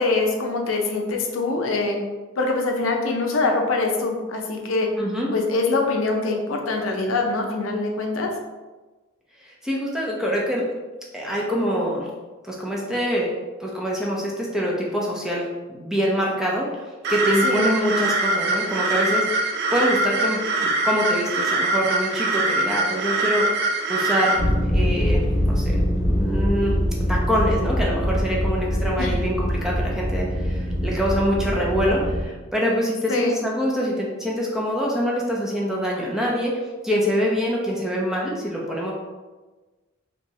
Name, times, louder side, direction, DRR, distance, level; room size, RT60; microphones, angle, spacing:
voice 1, 0.0-2.0 2.4-4.9 5.3-8.3 17.4-17.8 29.0-29.1 33.1-33.4, left 3 dB, 85° left, 2 dB, 0.5 m, -24 dB
voice 2, 5.0-5.3 9.4-10.7 11.1-12.1 12.4-13.3 13.6-16.8 17.1-24.4 24.7-25.8 26.1-26.7 27.1-38.9, equal, 5° right, -4 dB, 0.5 m, -25 dB
sound 1, 17.0-24.4, right 2 dB, 55° right, 0.4 m, -23 dB
sound 2, 24.4-32.3, equal, 60° left, 0.9 m, -23 dB
3.4 x 2.9 x 2.7 m, 1.2 s
head